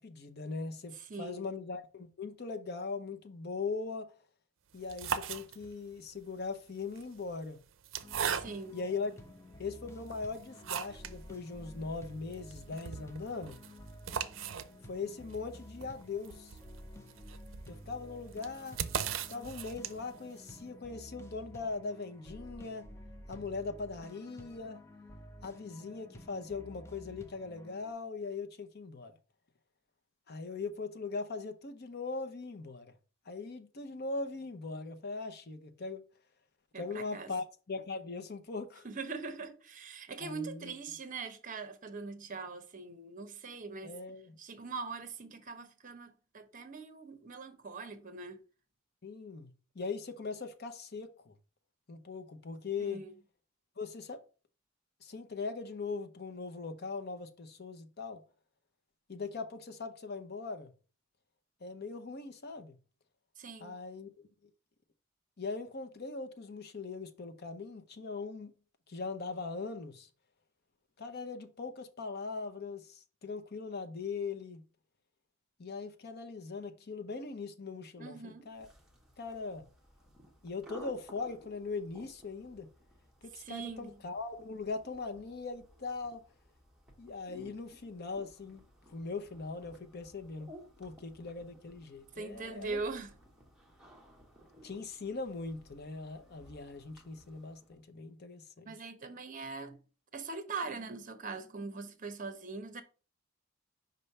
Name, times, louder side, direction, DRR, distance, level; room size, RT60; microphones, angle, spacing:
voice 1, 0.0-4.1 4.7-7.6 8.7-9.1 9.6-13.6 14.9-16.6 17.7-18.8 19.3-22.8 23.3-24.8 25.4-29.1 30.3-32.9 33.3-36.0 36.8-38.9 40.2-40.7 43.8-44.4 49.0-51.3 51.9-53.0 53.8-54.2 55.0-58.2 59.1-60.7 61.6-62.8 63.6-64.3 65.4-68.5 68.9-70.1 71.0-74.6 75.6-78.7 79.2-79.6 80.4-82.7 83.2-86.2 87.0-88.6 88.9-92.8 94.6-98.7, left 4 dB, 55° left, 0.7 m, -40 dB
voice 2, 1.1-1.5 8.3-8.8 36.7-37.3 38.8-43.9 44.4-48.4 52.8-53.1 63.4-63.8 78.0-78.5 83.4-83.9 92.2-93.1 98.7-99.8 100.1-102.8, right 4 dB, 40° right, 0.8 m, -42 dB
sound 1, 4.7-5.9 6.8-8.9 9.5-9.6 10.1-11.2 11.5-11.6 11.9-12.0 12.3-20.2, right 8 dB, 70° right, 0.5 m, -39 dB
sound 2, 8.0-27.9, equal, 15° left, 0.6 m, -52 dB
sound 3, 78.5-97.8, equal, 5° right, 1.4 m, -58 dB
5.2 x 3.3 x 5.5 m
head